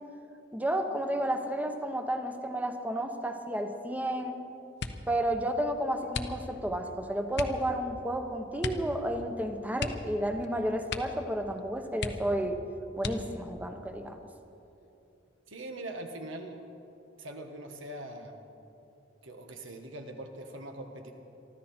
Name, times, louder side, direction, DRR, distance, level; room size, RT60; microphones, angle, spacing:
voice 1, 0.5-4.4 5.1-12.6 13.0-14.2, right 1 dB, 10° right, 6 dB, 1.0 m, -31 dB
sound 1, 4.8-5.2 6.1-6.7 7.3-7.7 8.6-8.9 9.2-9.3 9.7-10.5 10.8-11.3 11.6-11.7 12.0-12.5 13.0-13.5 14.2-14.9 15.2-15.6, left 4 dB, 60° left, 0.9 m, -37 dB
voice 2, 15.5-16.6 17.2-18.3 19.2-21.1, right 1 dB, 80° right, 4 dB, 1.6 m, -42 dB
23.5 x 13.5 x 4.4 m, 2.8 s
head